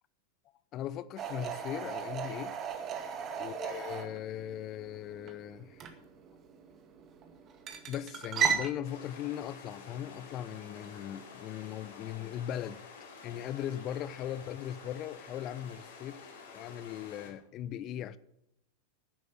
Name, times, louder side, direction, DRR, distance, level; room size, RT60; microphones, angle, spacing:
voice 1, 0.7-2.5 3.4-5.9 7.9-12.8 13.2-16.2 16.5-18.2, left 11 dB, 35° left, 0.6 m, -39 dB
sound 1, 1.2-8.7, right 7 dB, 30° right, 1.9 m, -36 dB
sound 2, 8.8-17.3, left 5 dB, 60° left, 4.2 m, -50 dB
12.0 x 10.5 x 6.9 m
figure-of-eight pair, 90°, 0 cm